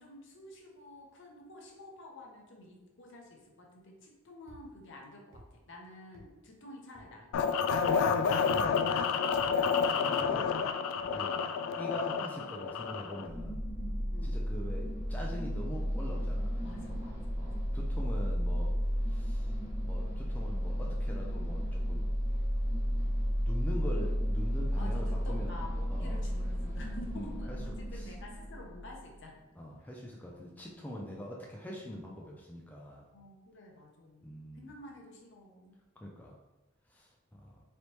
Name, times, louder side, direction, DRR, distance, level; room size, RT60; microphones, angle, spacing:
voice 1, 0.0-7.5 9.3-9.5 14.1-14.5 16.6-17.5 24.7-29.3 31.0-31.1 33.1-35.8, left 1 dB, 60° left, 0 dB, 0.8 m, -50 dB
sound 1, 4.5-4.6 5.3-5.5 6.1-6.3 6.9-7.1 7.7-7.9 8.5-8.7 9.4-9.5 10.2-10.3 11.0-11.2, equal, 80° right, 0.9 m, -52 dB
sound 2, 7.3-13.3, left 6 dB, 90° left, 0.3 m, -29 dB
voice 2, 8.0-8.7 9.9-10.5 11.0-11.4 11.8-13.7 14.2-16.6 17.3-18.7 19.0-19.6 19.8-22.1 23.4-25.6 25.9-26.2 27.1-27.6 27.9-28.1 29.6-33.1 34.2-34.7 36.0-36.4 36.9-37.6, equal, 10° left, -2 dB, 0.4 m, -43 dB
sound 3, 13.2-29.2, equal, 10° right, 0.8 m, -33 dB
4.1 x 3.3 x 3.0 m, 1.1 s
head